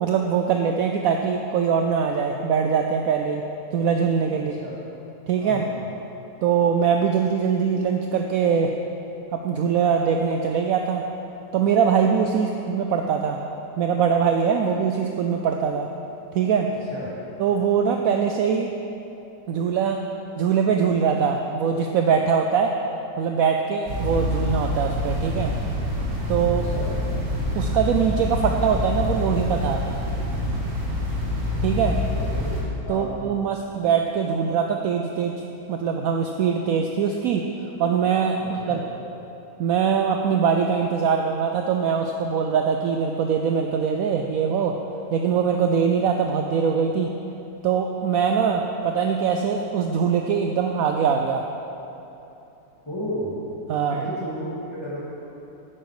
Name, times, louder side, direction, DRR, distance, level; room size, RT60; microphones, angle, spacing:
voice 1, 0.0-3.4 3.7-4.5 5.3-5.6 6.4-8.7 9.3-11.0 11.5-13.4 13.8-15.9 16.3-16.7 17.4-18.7 19.5-20.0 20.4-22.8 23.2-25.5 26.3-26.6 27.5-29.8 31.6-32.0 32.9-35.3 35.7-37.5 37.8-38.8 39.6-44.8 45.1-47.1 47.6-51.4 53.7-54.0, right 6 dB, 75° right, 3 dB, 0.8 m, -22 dB
voice 2, 4.4-4.7 5.4-5.8 12.4-12.5 16.9-17.1 26.7-26.9 32.1-32.4 32.8-33.1 38.4-38.8 52.8-53.4 53.9-54.5 54.8-55.0, equal, 15° left, -8 dB, 2.4 m, -33 dB
sound 1, 23.9-32.6, left 1 dB, 55° right, 1.9 m, -26 dB
10.0 x 8.1 x 4.9 m, 2.9 s
omnidirectional pair, 2.0 m